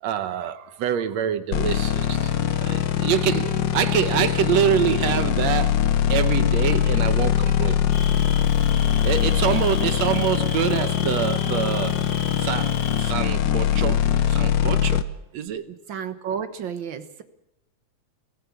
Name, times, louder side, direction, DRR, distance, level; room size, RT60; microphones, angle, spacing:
voice 1, 0.0-7.8 9.0-12.0 12.4-15.1 15.3-15.7, right 9 dB, 70° right, 2.1 m, -26 dB
sound 1, 1.5-15.0, left 10 dB, 70° left, 1.1 m, -22 dB
sound 2, 2.3-7.9, left 4 dB, 50° left, 6.0 m, -44 dB
Cricket, 7.9-13.1, left 4 dB, 85° left, 0.6 m, -36 dB
voice 2, 15.7-17.2, right 7 dB, 55° right, 1.5 m, -32 dB
24.0 x 16.5 x 7.2 m
omnidirectional pair, 3.4 m